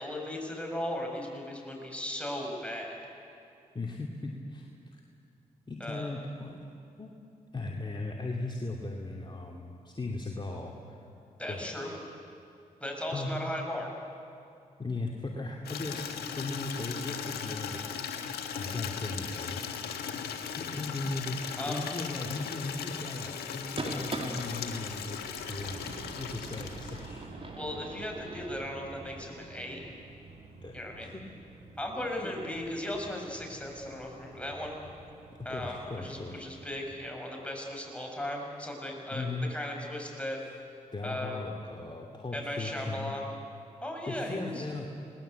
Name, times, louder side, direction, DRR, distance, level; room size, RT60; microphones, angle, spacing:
voice 1, 0.0-3.0 5.8-6.2 11.4-11.9 12.8-13.9 21.6-21.8 27.5-29.9 30.7-31.1 31.8-34.8 35.4-40.4 41.0-41.4 42.3-43.3 43.8-44.6, left 1 dB, 5° left, 0 dB, 7.4 m, -37 dB
voice 2, 3.7-5.0 5.7-6.7 7.0-7.1 7.5-11.0 11.5-11.7 13.1-13.4 14.8-19.6 20.5-27.3 30.6-31.2 32.2-32.3 35.5-36.4 39.1-39.5 40.9-43.1 44.0-44.9, left 2 dB, 30° left, 0 dB, 2.7 m, -37 dB
Water tap faucet / Liquid, 15.6-27.2, left 7 dB, 85° left, 1.5 m, -38 dB
sound 1, 23.6-28.6, right 2 dB, 35° right, 3.8 m, -42 dB
sound 2, 25.3-37.0, right 3 dB, 80° right, 2.9 m, -49 dB
27.5 x 20.0 x 8.2 m, 2.5 s
supercardioid pair, 40°, 16 cm